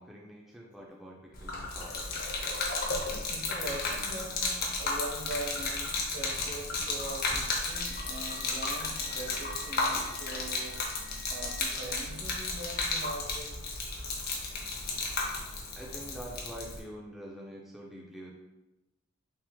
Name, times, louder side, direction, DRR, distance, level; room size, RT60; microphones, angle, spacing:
voice 1, 0.0-2.0 15.7-18.3, equal, ahead, -3 dB, 0.3 m, -45 dB
Gurgling / Liquid, 1.3-16.8, left 3 dB, 45° left, 0.6 m, -33 dB
voice 2, 3.3-10.8 11.3-14.1, right 2 dB, 60° right, -1 dB, 0.7 m, -42 dB
Wind instrument woodwind instrument, 7.8-11.7, left 5 dB, 80° left, 0.9 m, -52 dB
3.4 x 2.8 x 3.0 m, 1.0 s
head